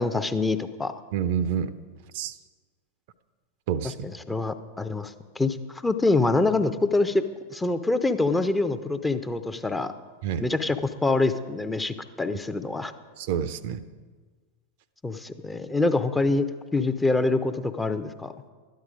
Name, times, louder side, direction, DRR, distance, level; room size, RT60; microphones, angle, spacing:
voice 1, 0.0-0.9 4.3-7.2 7.5-9.9 10.4-10.8 11.0-12.9 15.0-16.5 16.7-18.3, left 3 dB, 10° left, 10 dB, 0.6 m, -25 dB
voice 2, 1.1-1.7 2.1-2.4 3.7-3.9 10.2-10.5 13.2-13.8, right 8 dB, 50° right, 14 dB, 0.5 m, -28 dB
12.5 x 10.5 x 5.0 m, 1.4 s
figure-of-eight pair, 90°, 0 cm